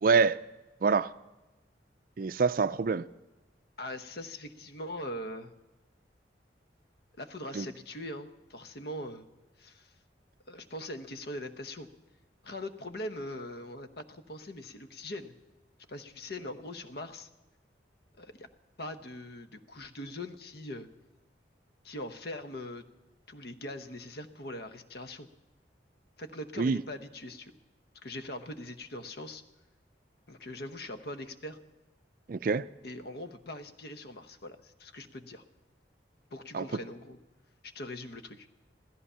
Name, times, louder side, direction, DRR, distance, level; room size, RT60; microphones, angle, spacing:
voice 1, 0.0-0.4 0.8-1.1 2.2-3.1 7.5-7.7 26.6-26.8 32.3-32.7 36.5-36.6, right 5 dB, 50° right, 0.4 m, -26 dB
voice 2, 3.8-5.5 7.2-9.3 9.6-9.9 10.5-11.9 12.4-15.3 15.9-17.3 18.2-18.5 18.8-20.9 21.8-22.8 23.3-25.3 26.2-27.5 28.0-29.4 30.3-31.6 32.8-35.4 36.3-37.2 37.6-38.5, left 1 dB, 60° left, 1.0 m, -41 dB
15.5 x 14.0 x 5.6 m
head